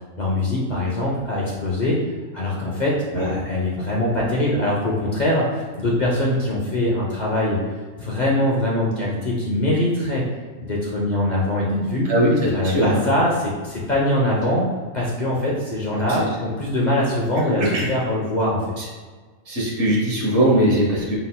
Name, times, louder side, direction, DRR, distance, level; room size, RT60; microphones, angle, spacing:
voice 1, 0.2-2.0 2.3-7.6 7.9-10.2 10.6-12.1 12.5-14.7 14.9-18.6, left 1 dB, 50° left, -4 dB, 0.5 m, -22 dB
voice 2, 12.6-13.0 16.1-16.3 17.6-17.9 18.8-18.9 19.5-21.1, right 1 dB, 60° right, -4 dB, 1.3 m, -20 dB
4.0 x 3.9 x 2.2 m, 1.4 s
omnidirectional pair, 1.4 m